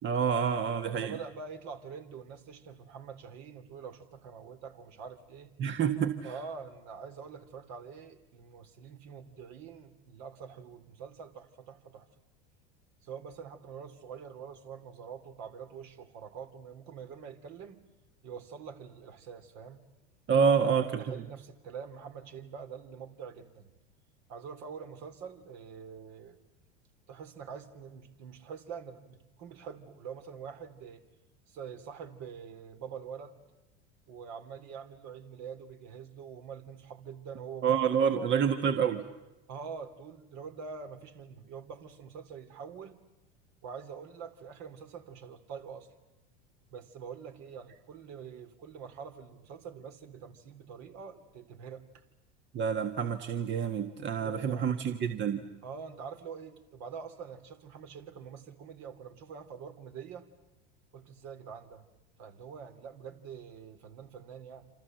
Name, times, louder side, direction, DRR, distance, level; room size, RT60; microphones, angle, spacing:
voice 1, 0.0-1.1 5.6-6.3 20.3-21.0 37.6-39.0 52.5-55.4, right 7 dB, 35° right, 7 dB, 1.6 m, -28 dB
voice 2, 0.8-5.5 6.2-12.1 13.0-17.8 18.2-19.8 20.8-23.7 24.3-26.4 27.1-31.0 31.5-33.4 34.1-37.8 38.1-38.5 39.5-43.0 43.6-45.9 46.7-52.0 54.2-54.7 55.6-60.3 60.9-61.8 62.2-64.7, right 6 dB, 55° right, 7 dB, 3.3 m, -45 dB
27.5 x 27.0 x 7.8 m, 1.0 s
hypercardioid pair, 95°, 33 cm